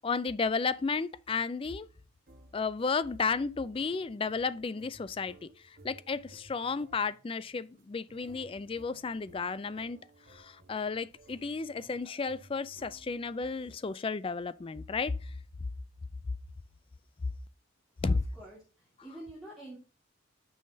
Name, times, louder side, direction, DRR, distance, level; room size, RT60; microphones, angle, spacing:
voice 1, 0.0-1.9 2.5-10.0 10.3-15.3 18.0-18.2, left 4 dB, 25° left, 0.3 m, -33 dB
sound 1, 2.3-13.4, right 1 dB, 45° right, 1.3 m, -58 dB
voice 2, 18.0-18.6 19.0-19.8, right 1 dB, ahead, 1.9 m, -46 dB
9.4 x 5.6 x 2.7 m
head